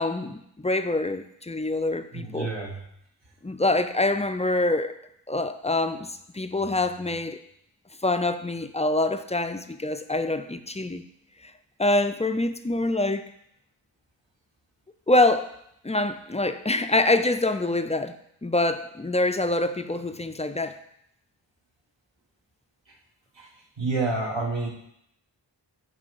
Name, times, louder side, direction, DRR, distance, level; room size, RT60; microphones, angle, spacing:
voice 1, 0.0-2.5 3.4-5.0 5.3-7.4 8.0-11.0 11.8-13.2 15.1-15.5 15.8-18.2 18.4-20.8, left 2 dB, 15° left, 9 dB, 0.3 m, -25 dB
voice 2, 2.1-2.8 23.3-23.5 23.8-24.7, right 3 dB, 70° right, -1 dB, 1.7 m, -28 dB
8.9 x 3.3 x 5.3 m, 0.74 s
wide cardioid pair, 70°, 46 cm